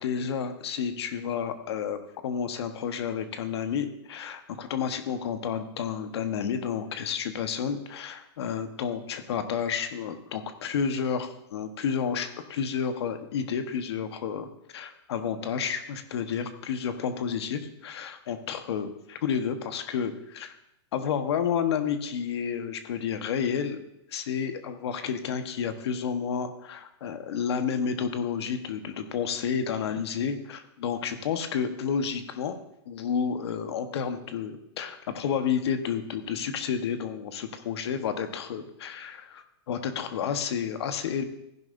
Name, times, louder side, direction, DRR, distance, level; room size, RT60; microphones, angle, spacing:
voice 1, 0.0-20.6 20.9-23.8 24.1-32.6 32.9-41.2, left 7 dB, 70° left, 8 dB, 1.1 m, -30 dB
15.0 x 10.5 x 2.6 m, 0.81 s
hypercardioid pair, 145°, 14 cm